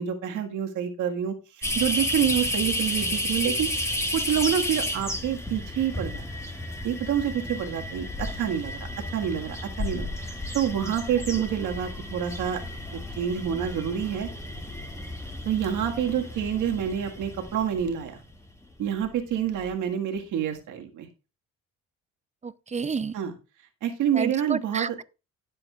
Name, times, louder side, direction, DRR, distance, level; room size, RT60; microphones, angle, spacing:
voice 1, 0.0-6.2 6.8-8.9 9.1-12.6 12.9-14.3 15.5-18.2 18.8-21.1 23.1-23.4 23.8-25.0, right 9 dB, 85° right, 1.8 m, -28 dB
sound 1, 1.6-18.5 19.0-19.1 19.6-19.7, left 1 dB, 10° left, 2.1 m, -32 dB
voice 2, 22.4-23.2 24.2-25.0, right 5 dB, 25° right, 0.5 m, -30 dB
18.0 x 7.6 x 2.4 m
cardioid pair, 90°, 30 cm